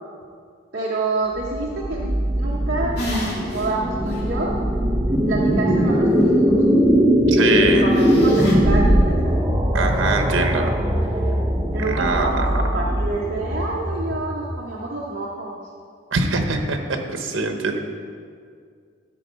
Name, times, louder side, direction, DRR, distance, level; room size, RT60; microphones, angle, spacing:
voice 1, 0.7-3.0 3.5-4.6 5.3-6.6 7.8-9.4 11.7-15.6, right 2 dB, 50° right, -4 dB, 0.9 m, -27 dB
sound 1, 1.4-14.6, equal, 15° right, 0.6 m, -20 dB
sound 2, 2.9-3.7 4.1-4.2 7.9-8.5, left 1 dB, 55° left, 2.4 m, -29 dB
voice 2, 7.3-7.9 9.7-10.7 11.8-12.4 16.1-17.8, right 3 dB, 80° right, 5 dB, 0.9 m, -23 dB
12.5 x 4.7 x 5.1 m, 2.1 s
head